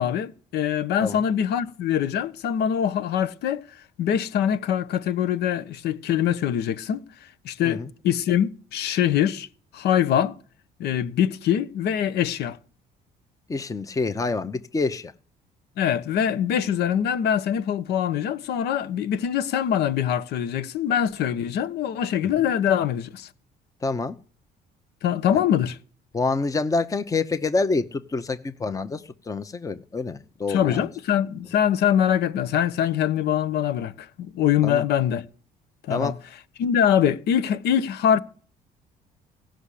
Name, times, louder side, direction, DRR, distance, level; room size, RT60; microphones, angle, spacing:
voice 1, 0.0-3.6 4.0-7.0 7.4-9.5 9.7-10.4 10.8-12.6 15.8-23.3 25.0-25.8 30.5-35.2 35.9-36.1 36.6-38.2, left 9 dB, 75° left, 1.1 m, -23 dB
voice 2, 13.5-15.1 23.8-24.2 25.3-25.4 26.1-30.9 34.6-34.8 35.9-36.2, left 3 dB, 20° left, 0.9 m, -27 dB
17.0 x 6.4 x 8.4 m
cardioid pair, 110°, 17 cm